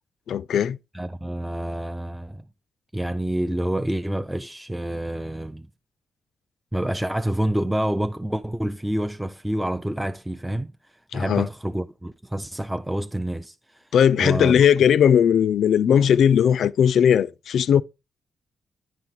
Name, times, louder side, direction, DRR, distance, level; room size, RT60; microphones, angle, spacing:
voice 1, 0.3-0.8 11.1-11.5 13.9-17.8, left 8 dB, 75° left, 0.3 m, -18 dB
voice 2, 0.9-2.4 2.9-5.7 6.7-10.7 11.1-13.9 14.1-14.6, right 1 dB, 5° right, 0.3 m, -28 dB
10.0 x 4.5 x 3.9 m
wide cardioid pair, 145°, 0 cm